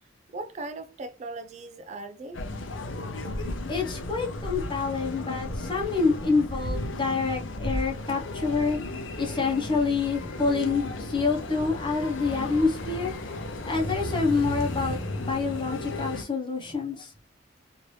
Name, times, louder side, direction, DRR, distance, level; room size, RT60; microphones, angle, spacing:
voice 1, 0.3-2.4, right 2 dB, 35° right, 0.3 m, -38 dB
sound 1, 2.3-16.2, left 1 dB, 80° left, 0.6 m, -34 dB
voice 2, 3.7-8.8 9.2-13.1 13.7-17.1, left 4 dB, 25° left, 0.8 m, -27 dB
3.0 x 2.6 x 3.1 m
head